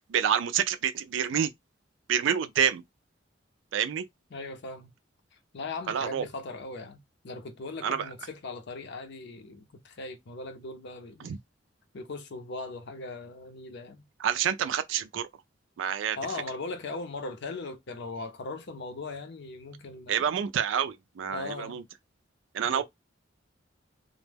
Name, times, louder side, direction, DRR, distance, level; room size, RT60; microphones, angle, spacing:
voice 1, 0.0-1.5 2.1-2.8 3.7-4.0 5.9-6.3 7.8-8.1 11.2-11.4 14.2-15.3 15.8-16.2 20.1-21.8 22.5-22.8, right 8 dB, 70° right, 0.3 m, -28 dB
voice 2, 4.3-4.9 5.5-11.3 11.9-14.1 16.2-20.4 21.3-21.8 22.6-22.8, left 3 dB, 60° left, 0.6 m, -39 dB
2.1 x 2.1 x 3.2 m
head